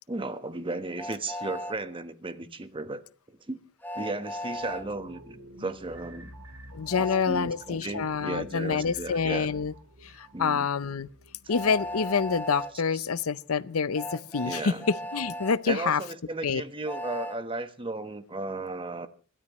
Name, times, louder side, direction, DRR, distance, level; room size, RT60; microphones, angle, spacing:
voice 1, 0.1-3.0 3.3-3.6 3.9-6.3 7.0-9.5 10.3-10.7 14.4-14.8 15.7-19.1, right 2 dB, 25° right, 1.2 m, -35 dB
Train, 1.0-1.8 3.8-4.8 6.9-7.2 9.3-9.4 11.5-12.7 13.9-15.6 16.8-17.4, left 1 dB, 10° left, 1.2 m, -36 dB
sound 1, 4.5-13.8 14.2-14.3, right 1 dB, 90° right, 2.9 m, -50 dB
voice 2, 6.7-9.7 10.0-11.1 11.5-14.7 15.1-16.0 16.4-16.6, left 5 dB, 70° left, 0.6 m, -27 dB
26.5 x 13.0 x 3.1 m
head